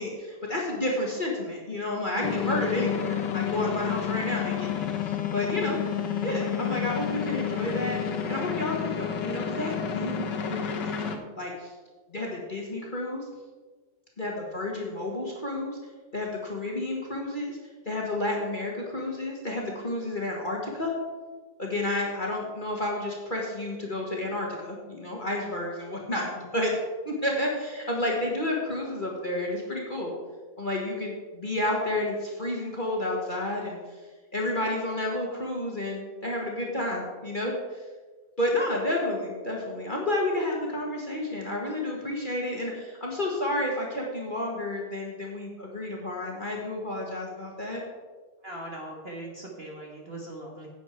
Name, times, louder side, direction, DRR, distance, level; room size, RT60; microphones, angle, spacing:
voice 1, 0.0-5.8 6.2-8.0 8.3-10.8 11.1-11.7 12.1-13.2 14.2-15.8 16.1-17.6 17.9-20.9 21.6-26.7 27.1-30.1 30.6-34.0 34.3-37.8 38.4-47.8, left 1 dB, 25° left, -2 dB, 1.6 m, -31 dB
sound 1, 2.2-11.2, left 8 dB, 65° left, 1.6 m, -30 dB
voice 2, 48.4-50.7, right 1 dB, 35° right, -1 dB, 1.5 m, -40 dB
11.0 x 8.6 x 4.5 m, 1.3 s
omnidirectional pair, 2.2 m